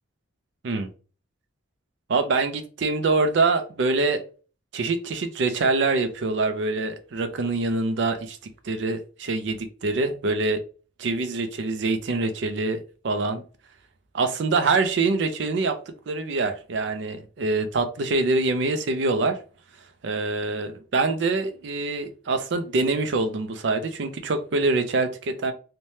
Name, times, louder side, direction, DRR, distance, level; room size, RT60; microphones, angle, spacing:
voice 1, 2.1-4.2 4.7-8.4 8.6-10.6 11.0-12.8 13.0-13.4 14.1-15.8 16.1-19.4 20.0-25.5, right 3 dB, 60° right, 0.4 m, -25 dB
3.1 x 2.1 x 2.7 m
head